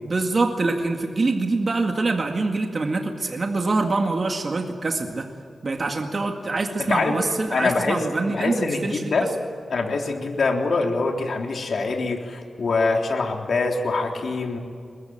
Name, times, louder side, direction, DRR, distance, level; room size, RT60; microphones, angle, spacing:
voice 1, 0.0-5.3 5.6-9.3, right 3 dB, 45° right, 3 dB, 2.0 m, -25 dB
voice 2, 7.5-8.0 8.3-9.3 9.7-14.6, left 3 dB, 70° left, 2 dB, 3.5 m, -24 dB
23.0 x 21.0 x 9.0 m, 2.3 s
wide cardioid pair, 95°, 0 cm